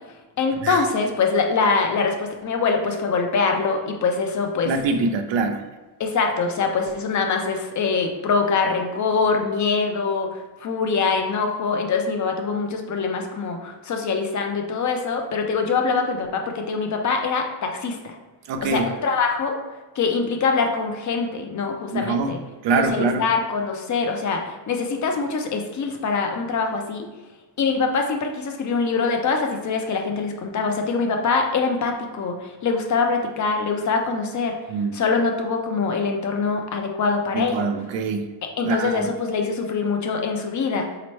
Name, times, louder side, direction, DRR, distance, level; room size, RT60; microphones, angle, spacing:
voice 1, 0.4-4.7 6.0-18.2 18.6-19.6 20.0-22.4 22.8-27.1 27.6-34.6 34.9-37.7 38.4-40.9, left 4 dB, 45° left, 3 dB, 0.5 m, -24 dB
voice 2, 4.7-5.6 18.5-18.9 21.9-22.4 22.6-23.2 34.7-35.0 37.3-38.3 38.6-39.1, right 4 dB, 85° right, 6 dB, 0.6 m, -24 dB
4.2 x 2.9 x 3.1 m, 1.2 s
cardioid pair, 140°, 42 cm